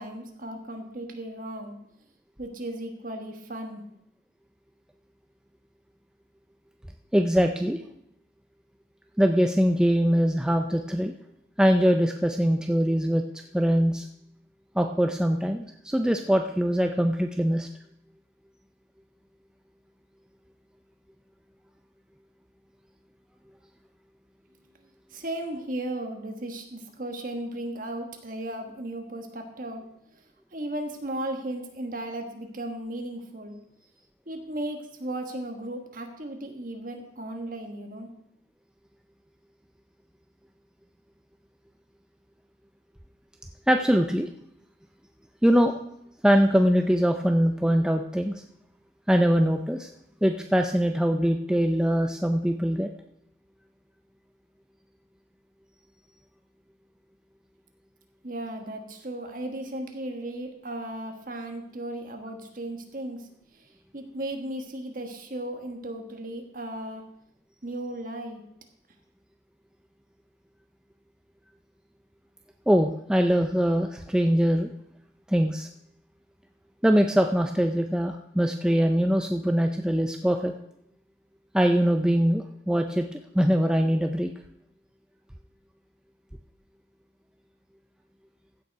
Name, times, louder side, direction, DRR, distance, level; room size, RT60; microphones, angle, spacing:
voice 1, 0.0-1.8 2.4-3.8 25.1-29.8 30.1-30.2 30.5-33.6 34.2-38.1 58.2-67.0 67.6-68.4, right 1 dB, 45° right, 3 dB, 1.5 m, -36 dB
voice 2, 7.1-7.8 9.2-11.1 11.6-13.3 13.5-14.1 14.8-17.7 43.7-44.3 45.4-45.7 46.2-48.4 49.1-49.9 50.2-52.9 72.7-74.7 75.3-75.7 76.8-80.6 81.5-84.3, equal, 5° right, 4 dB, 0.4 m, -22 dB
15.5 x 6.6 x 4.7 m, 0.78 s
head